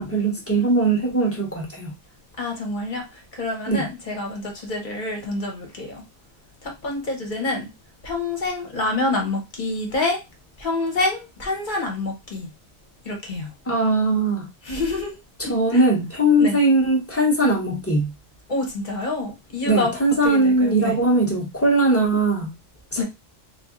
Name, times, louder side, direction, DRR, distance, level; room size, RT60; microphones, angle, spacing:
voice 1, 0.0-1.9 3.7-3.9 13.7-14.5 15.5-18.1 19.7-22.5 22.9-23.0, right 2 dB, 15° left, 0.8 m, -20 dB
voice 2, 2.4-6.0 6.6-7.7 8.0-10.2 10.6-12.5 13.0-13.5 14.6-15.2 15.4-15.8 16.4-16.6 18.5-20.0 20.2-21.0 23.0-23.1, left 2 dB, 45° left, 1.1 m, -27 dB
2.7 x 2.5 x 3.7 m
omnidirectional pair, 1.2 m